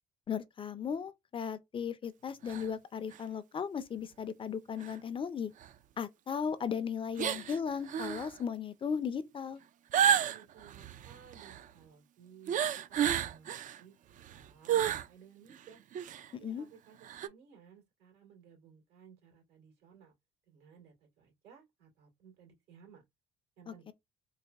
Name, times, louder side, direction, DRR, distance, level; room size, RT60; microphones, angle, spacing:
voice 1, 0.3-5.5 6.0-9.6 16.4-16.7 23.7-23.9, left 7 dB, 30° left, 0.5 m, -36 dB
sound 1, 2.5-2.7 3.1-3.2 4.8-4.9 5.6-5.7 7.2-7.6 7.9-8.3 9.9-11.6 12.5-13.8 14.2-15.1 15.5-15.6 15.9-16.3 17.0-17.3, right 9 dB, 50° right, 0.4 m, -31 dB
voice 2, 10.2-13.9 14.3-15.8 16.4-17.0 17.2-20.1 20.5-23.0 23.6-23.9, right 7 dB, 85° right, 2.5 m, -58 dB
4.0 x 2.1 x 3.4 m
cardioid pair, 110°, 17 cm